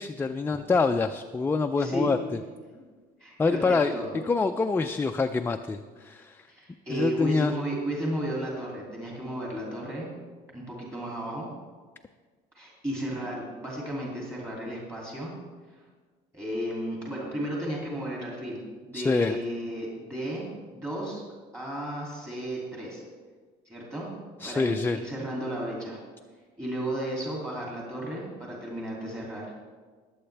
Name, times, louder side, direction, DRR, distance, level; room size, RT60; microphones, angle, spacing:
voice 1, 0.0-2.4 3.4-3.9 4.3-6.5 6.9-7.5 18.9-19.4 24.4-25.0, left 4 dB, 15° left, 6 dB, 0.3 m, -26 dB
voice 2, 1.8-2.2 3.2-4.1 6.5-10.1 10.5-11.5 12.5-15.3 15.7-15.8 16.3-21.2 21.5-23.0 23.7-24.1 24.4-26.0 26.6-29.5, right 1 dB, 15° right, -4 dB, 2.7 m, -34 dB
20.0 x 7.9 x 3.3 m, 1.5 s
cardioid pair, 130°, 17 cm